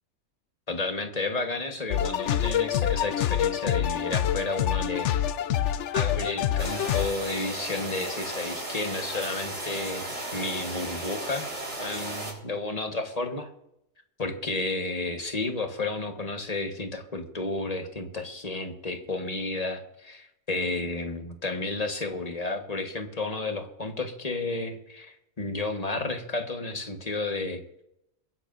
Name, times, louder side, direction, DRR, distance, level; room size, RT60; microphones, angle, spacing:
voice 1, 0.7-5.3 5.9-11.4 11.8-13.5 14.2-27.6, left 2 dB, 30° left, 4 dB, 1.5 m, -32 dB
sound 1, 1.9-7.1, left 10 dB, 65° left, 0.9 m, -26 dB
sound 2, 6.6-12.3, right 1 dB, 65° right, 4.3 m, -35 dB
22.5 x 10.5 x 2.6 m, 0.80 s
omnidirectional pair, 1.4 m